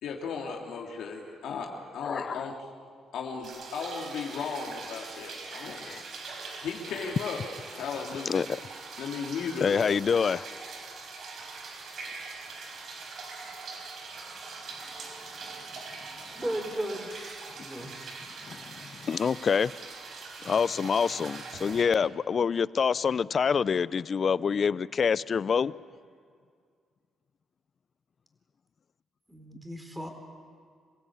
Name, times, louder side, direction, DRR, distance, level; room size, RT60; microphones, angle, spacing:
voice 1, 0.0-2.5 3.1-5.8 6.6-7.4 7.7-8.4 9.0-9.7, left 5 dB, 75° left, 0 dB, 3.0 m, -36 dB
voice 2, 2.0-2.5 5.8-6.0 8.3-8.6 9.6-10.5 18.4-19.7 20.4-25.7, left 6 dB, 45° left, 19 dB, 0.5 m, -26 dB
sound 1, 3.4-21.8, right 4 dB, 65° right, 4.5 m, -42 dB
voice 3, 16.3-18.2 29.3-30.1, right 1 dB, 10° right, 5 dB, 4.2 m, -36 dB
27.5 x 16.5 x 8.6 m, 2.1 s
cardioid pair, 90°, 0 cm